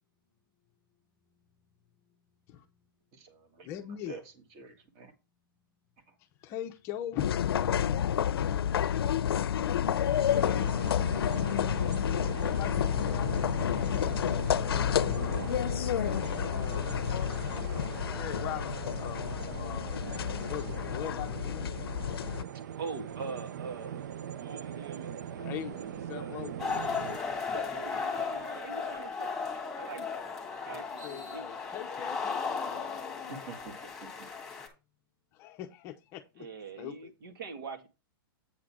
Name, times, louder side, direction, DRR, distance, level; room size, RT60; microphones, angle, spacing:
voice 1, 3.1-3.7 4.1-4.2 4.6-5.1 33.5-33.7 34.0-34.3, right 5 dB, 30° right, 1.7 m, -47 dB
voice 2, 3.6-4.2 6.4-8.5 12.3-13.5 16.4-17.0 18.2-20.0 20.5-22.1 25.4-26.7 30.7-33.5 35.3-36.5 36.8-37.1, left 12 dB, 20° left, 0.6 m, -42 dB
sound 1, 7.2-22.4, left 9 dB, 85° left, 0.6 m, -30 dB
sound 2, 10.3-27.2, right 9 dB, 50° right, 0.5 m, -41 dB
voice 3, 15.2-15.5 22.8-24.0 24.3-26.4 27.3-29.3 29.8-30.2 30.7-31.5 36.4-37.9, right 4 dB, 70° right, 2.2 m, -43 dB
sound 3, 26.6-34.7, left 5 dB, 5° left, 1.6 m, -36 dB
8.5 x 3.8 x 6.0 m
hypercardioid pair, 170°, 12 cm